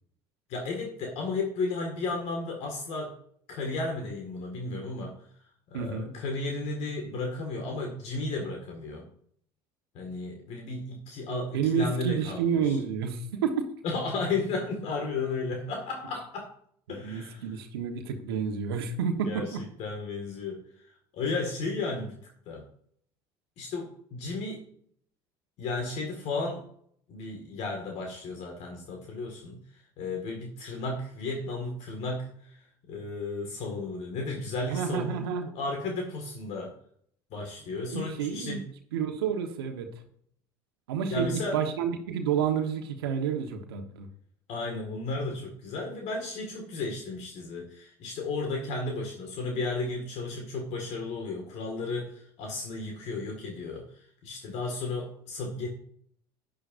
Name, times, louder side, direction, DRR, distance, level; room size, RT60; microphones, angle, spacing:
voice 1, 0.5-3.1 3.5-5.2 5.7-9.1 9.9-12.8 13.8-16.5 16.9-17.5 19.3-22.2 22.5-22.7 23.6-24.7 25.6-26.6 27.1-35.3 35.6-36.8 37.3-38.6 41.1-41.6 44.5-53.9 54.2-55.7, left 3 dB, 60° left, 2 dB, 2.0 m, -34 dB
voice 2, 5.7-6.1 11.5-13.6 17.0-19.6 34.7-35.5 37.9-38.6 38.9-39.9 40.9-44.1, right 7 dB, 90° right, 4 dB, 1.3 m, -30 dB
11.5 x 10.0 x 2.6 m, 0.65 s
hypercardioid pair, 75°, 12 cm